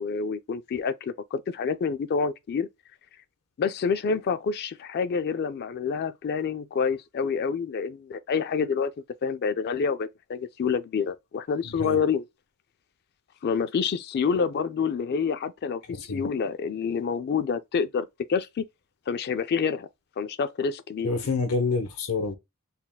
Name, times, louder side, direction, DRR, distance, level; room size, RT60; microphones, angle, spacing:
voice 1, 0.0-2.7 3.6-8.9 9.2-12.3 13.4-18.7 19.1-19.9 20.2-21.1, left 6 dB, 45° left, 0.3 m, -27 dB
voice 2, 11.6-12.0 15.9-16.2 21.0-22.3, left 3 dB, 80° left, 0.8 m, -28 dB
4.1 x 3.5 x 2.2 m
head